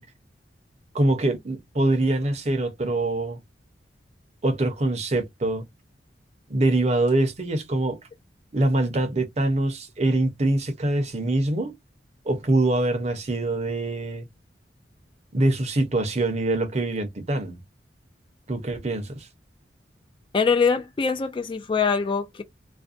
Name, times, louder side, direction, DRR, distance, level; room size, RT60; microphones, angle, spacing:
voice 1, 0.9-3.4 4.4-5.7 6.5-8.0 8.5-11.7 12.3-14.3 15.3-17.6 18.5-19.3, right 2 dB, 40° right, 0.7 m, -24 dB
voice 2, 20.3-22.4, left 5 dB, 30° left, 0.3 m, -23 dB
2.5 x 2.1 x 2.4 m
head